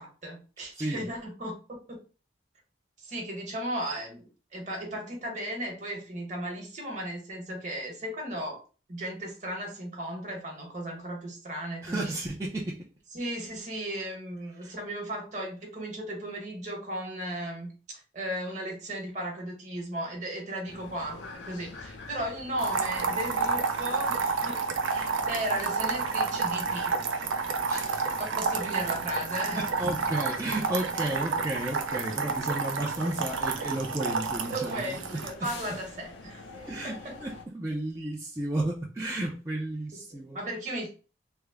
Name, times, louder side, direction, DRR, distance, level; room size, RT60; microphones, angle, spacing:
voice 1, 0.0-1.6 1.9-2.0 3.0-8.6 8.9-12.1 13.1-26.9 28.3-29.6 34.5-36.4 36.8-37.1 39.9-40.9, right 1 dB, 40° right, 1.1 m, -36 dB
voice 2, 0.7-1.1 11.8-12.9 14.6-14.7 27.7-28.1 29.5-35.3 36.5-40.4, right 1 dB, 15° right, 0.4 m, -33 dB
sound 1, 20.7-37.5, left 3 dB, 75° left, 0.6 m, -47 dB
sound 2, 22.6-35.3, right 4 dB, 85° right, 0.5 m, -30 dB
3.4 x 2.0 x 3.4 m
head